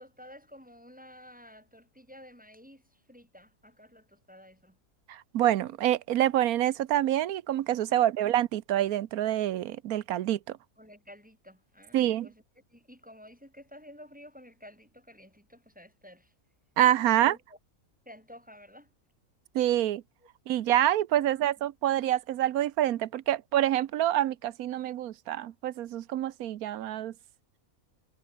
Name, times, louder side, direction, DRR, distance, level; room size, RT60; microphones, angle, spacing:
voice 1, 0.0-4.8 7.9-8.1 10.8-12.4 12.7-16.3 17.1-17.6 18.1-18.9 21.1-21.3, equal, 5° right, 6.2 m, -51 dB
voice 2, 5.1-10.6 11.9-12.3 16.8-17.3 19.5-20.0 20.5-27.1, right 12 dB, 85° right, 1.2 m, -26 dB
omnidirectional pair, 1.5 m